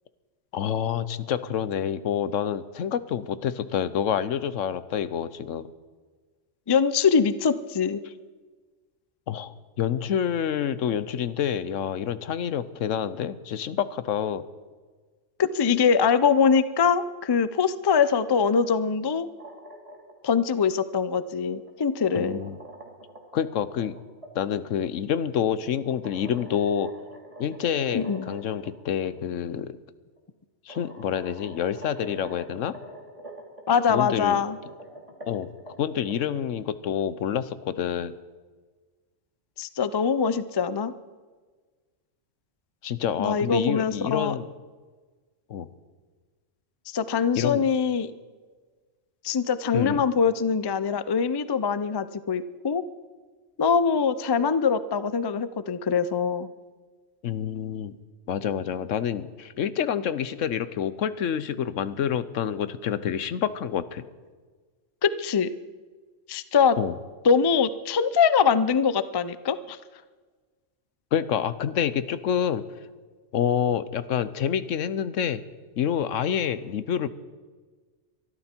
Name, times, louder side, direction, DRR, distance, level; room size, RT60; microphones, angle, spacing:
voice 1, 0.5-5.7 9.3-14.4 22.2-22.5 23.3-24.0 24.3-26.9 27.4-29.8 30.7-32.8 33.9-34.4 35.3-35.5 35.8-38.2 42.8-44.5 45.5-45.7 47.4-47.7 49.7-50.0 57.2-57.9 58.3-64.1 66.8-66.9 71.1-72.6 73.3-75.4 75.8-77.1, left 9 dB, 80° left, 14 dB, 1.1 m, -27 dB
voice 2, 6.7-8.0 15.4-19.3 20.2-22.4 27.9-28.3 33.7-34.6 39.6-40.9 43.2-44.4 46.9-48.1 49.2-52.8 53.6-56.5 65.0-65.5 66.3-66.8 67.2-69.8, left 6 dB, 40° left, 14 dB, 0.3 m, -23 dB
sound 1, 19.2-20.3 21.4-24.3 25.9-28.7 29.0-29.1 30.2-30.3 30.7-33.6 34.4-36.1, right 1 dB, 25° right, 2.5 m, -45 dB
23.0 x 13.5 x 4.5 m, 1.4 s
omnidirectional pair, 1.3 m